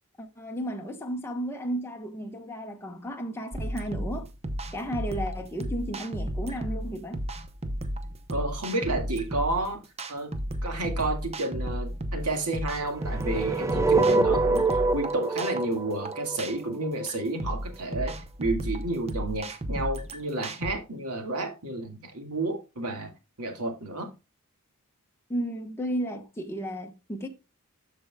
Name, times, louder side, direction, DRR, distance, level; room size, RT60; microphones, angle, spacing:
voice 1, 0.2-4.3 4.7-7.2 25.3-27.3, equal, 10° left, 1.1 m, -33 dB
sound 1, 3.5-20.7, right 1 dB, 30° right, 0.8 m, -34 dB
voice 2, 8.3-9.8 10.1-10.3 10.6-23.1 23.4-24.1, right 2 dB, 85° right, 1.9 m, -31 dB
Soft Echo Sweep, 13.0-17.1, right 3 dB, 15° right, 0.3 m, -25 dB
13.0 x 4.7 x 2.3 m
head